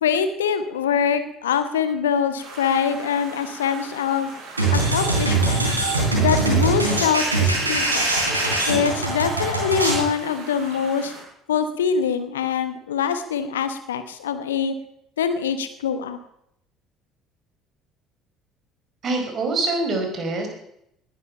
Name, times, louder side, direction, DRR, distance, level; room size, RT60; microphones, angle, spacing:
voice 1, 0.0-4.3 4.7-5.7 6.2-8.0 8.6-11.1 11.5-14.7 15.2-16.2, left 7 dB, 70° left, 10 dB, 1.2 m, -24 dB
sound 1, 2.4-11.2, right 3 dB, 55° right, 7.0 m, -41 dB
sound 2, 4.6-10.1, right 2 dB, 85° right, 3.6 m, -22 dB
voice 2, 19.0-20.5, right 2 dB, 40° right, 3 dB, 4.9 m, -24 dB
19.5 x 11.0 x 5.8 m, 0.77 s
figure-of-eight pair, 55°, 0 cm